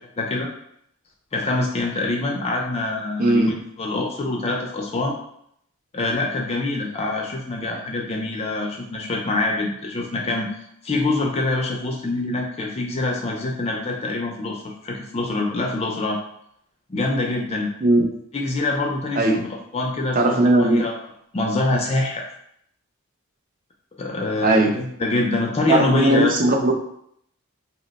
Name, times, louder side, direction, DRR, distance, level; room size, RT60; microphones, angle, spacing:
voice 1, 0.2-0.5 1.3-5.2 5.9-10.5 10.8-16.2 16.9-17.7 18.3-19.5 19.7-21.0 21.3-22.3 24.0-26.3, left 2 dB, 30° left, 0 dB, 0.4 m, -25 dB
voice 2, 3.2-3.5 17.8-18.1 19.2-19.4 20.1-20.9 24.4-24.8 25.7-26.7, right 2 dB, 40° right, 2 dB, 0.5 m, -18 dB
2.9 x 2.1 x 4.0 m, 0.71 s
head